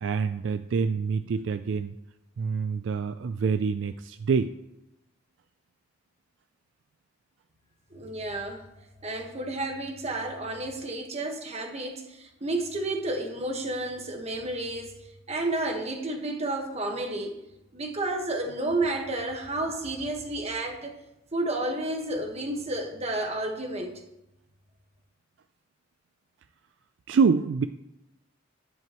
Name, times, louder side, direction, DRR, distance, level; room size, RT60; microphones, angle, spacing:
voice 1, 0.0-2.0 2.4-4.5 27.1-27.7, right 5 dB, 65° right, 11 dB, 0.4 m, -26 dB
voice 2, 7.9-8.7 9.0-14.9 15.3-17.3 17.7-20.9 21.3-24.0, right 2 dB, 30° right, 3 dB, 1.4 m, -31 dB
11.0 x 10.5 x 3.0 m, 0.89 s
head